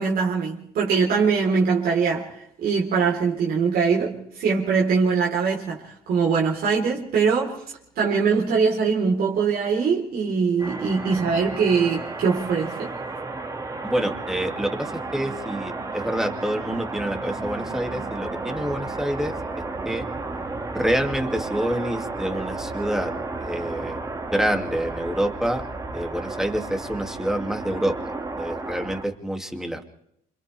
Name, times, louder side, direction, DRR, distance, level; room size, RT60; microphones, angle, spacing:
voice 1, 0.0-7.6 8.0-13.0, right 5 dB, 65° right, 4.0 m, -22 dB
sound 1, 10.6-29.1, right 3 dB, 20° right, 2.2 m, -33 dB
voice 2, 13.8-19.3 19.8-20.0 20.7-23.1 23.4-24.0 24.3-25.6 25.9-29.8, right 1 dB, 5° right, 2.5 m, -27 dB
28.5 x 26.0 x 3.5 m
cardioid pair, 110°, 17 cm